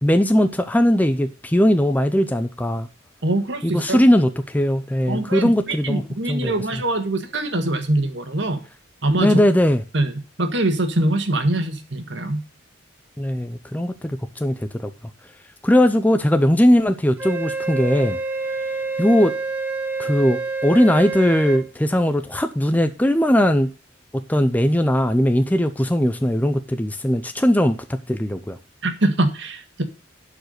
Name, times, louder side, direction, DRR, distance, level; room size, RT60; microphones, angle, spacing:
voice 1, 0.0-2.9 3.6-6.0 6.3-6.5 9.2-9.8 13.2-14.9 15.6-18.2 19.0-19.3 20.0-23.7 24.1-28.6, equal, 10° left, 0.5 m, -19 dB
voice 2, 3.2-4.0 5.1-8.6 9.0-9.4 9.9-10.1 10.4-12.4 28.8-29.8, right 2 dB, 60° right, 1.6 m, -23 dB
Wind instrument woodwind instrument, 17.2-21.6, right 3 dB, 10° right, 1.2 m, -27 dB
11.5 x 4.8 x 6.5 m
head